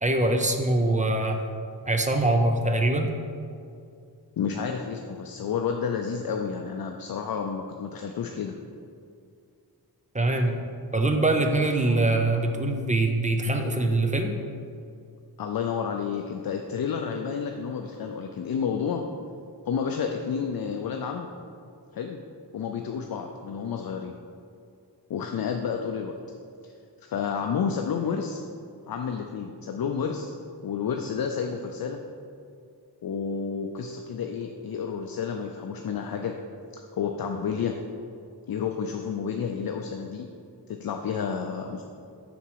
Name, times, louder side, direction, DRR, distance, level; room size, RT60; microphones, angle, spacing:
voice 1, 0.0-1.4 1.9-3.1 10.1-10.6 10.9-14.4, right 2 dB, 20° right, 4 dB, 0.5 m, -23 dB
voice 2, 4.4-8.6 15.4-19.1 19.7-21.3 21.9-22.2 22.5-24.1 25.1-26.1 26.6-26.7 27.0-28.4 28.9-30.4 30.6-32.0 33.0-36.3 36.7-37.7 38.5-40.3 40.7-41.8, left 6 dB, 60° left, 3 dB, 0.5 m, -30 dB
7.0 x 6.0 x 4.6 m, 2.4 s
wide cardioid pair, 150°, 40 cm